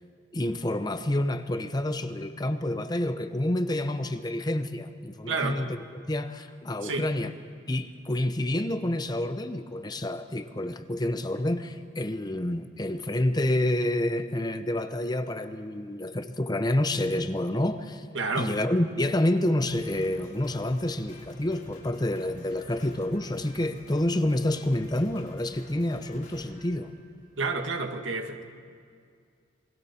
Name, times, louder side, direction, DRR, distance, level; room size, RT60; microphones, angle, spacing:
voice 1, 0.3-7.3 7.7-18.1 18.4-26.9, left 1 dB, 20° left, 9 dB, 0.8 m, -28 dB
voice 2, 5.3-5.6 6.8-7.1 18.1-18.5 27.4-28.4, right 3 dB, 85° right, 5 dB, 1.8 m, -29 dB
Drum kit, 19.6-27.4, left 1 dB, 50° left, 6.5 m, -51 dB
27.5 x 22.0 x 4.4 m, 2.2 s
head